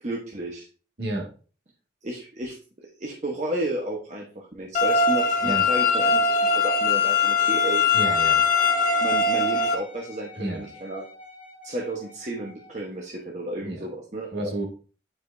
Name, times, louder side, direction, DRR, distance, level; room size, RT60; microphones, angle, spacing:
voice 1, 0.0-0.7 2.0-2.6 3.0-6.2 6.5-7.8 9.0-11.0 11.6-14.5, right 1 dB, 40° right, -1 dB, 1.0 m, -32 dB
voice 2, 1.0-1.3 5.4-5.6 7.9-8.4 10.4-10.7 13.6-13.9 14.3-14.6, right 1 dB, 60° right, 0 dB, 1.9 m, -31 dB
sound 1, 4.7-9.7, left 4 dB, 40° left, 1.0 m, -21 dB
Wind instrument woodwind instrument, 8.6-12.9 13.5-13.6, left 6 dB, 10° right, 1.7 m, -45 dB
9.2 x 4.8 x 2.6 m, 0.38 s
head